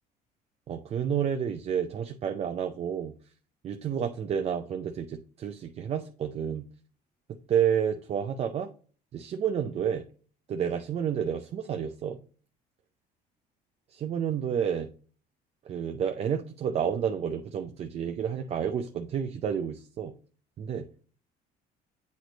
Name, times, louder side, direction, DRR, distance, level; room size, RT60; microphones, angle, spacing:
voice 1, 0.7-3.1 3.6-6.6 7.5-8.7 9.1-10.0 10.5-12.2 13.9-14.9 15.7-20.1 20.6-20.9, right 8 dB, 35° right, 7 dB, 0.5 m, -30 dB
8.2 x 3.1 x 3.9 m, 0.40 s
cardioid pair, 130°, 17 cm